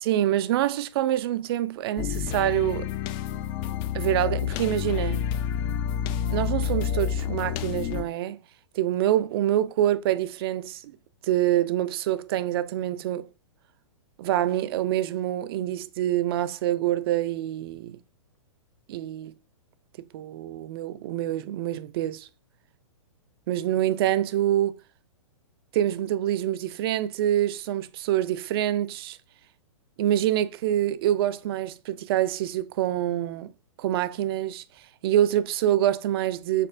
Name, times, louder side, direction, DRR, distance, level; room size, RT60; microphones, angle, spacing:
voice 1, 0.0-2.9 3.9-5.2 6.3-8.4 8.8-11.0 11.2-13.3 14.2-18.0 18.9-19.3 20.1-22.3 23.5-24.8 25.7-29.2 30.0-33.5 33.8-34.6 35.0-36.7, right 12 dB, 50° right, 0.4 m, -26 dB
sound 1, 2.0-8.0, left 9 dB, 30° left, 0.4 m, -29 dB
6.6 x 2.7 x 2.6 m
hypercardioid pair, 130°, 17 cm